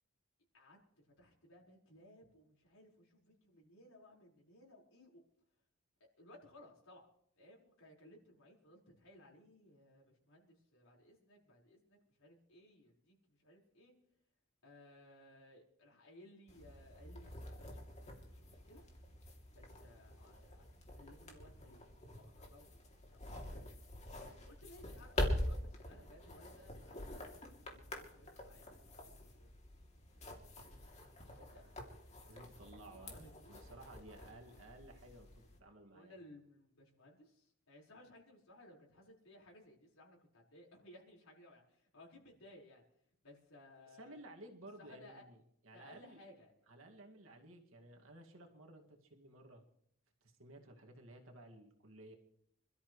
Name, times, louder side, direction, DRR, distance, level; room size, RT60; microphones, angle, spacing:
voice 1, 0.5-5.2 6.0-7.1 7.4-13.9 14.6-18.8 19.5-20.7 20.9-23.7 24.4-27.3 27.7-29.5 30.1-31.0 31.2-32.2 32.9-33.6 33.9-34.7 35.9-42.8 43.2-44.2 44.8-45.2 45.7-46.5, left 1 dB, 85° left, -2 dB, 5.0 m, -61 dB
sound 1, 16.5-35.6, left 1 dB, 35° left, 2.9 m, -45 dB
voice 2, 32.2-36.2 44.0-45.4 45.6-46.2 46.7-49.6 50.2-52.1, right 1 dB, 75° right, 2 dB, 2.2 m, -56 dB
27.0 x 13.0 x 3.2 m, 0.70 s
head